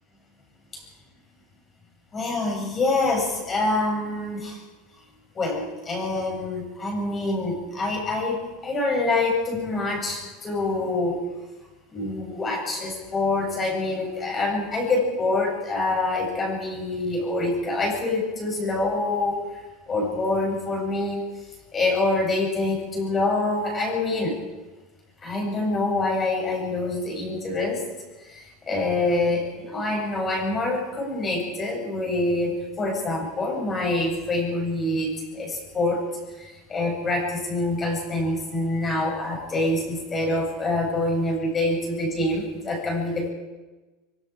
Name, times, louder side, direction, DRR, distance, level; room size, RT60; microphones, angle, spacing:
voice 1, 2.1-4.6 5.3-11.2 11.9-19.4 19.9-21.2 21.7-24.4 25.2-27.8 28.3-36.0 36.4-43.3, left 2 dB, 20° left, 0 dB, 7.6 m, -26 dB
25.0 x 25.0 x 4.8 m, 1.2 s
supercardioid pair, 155°, 0 cm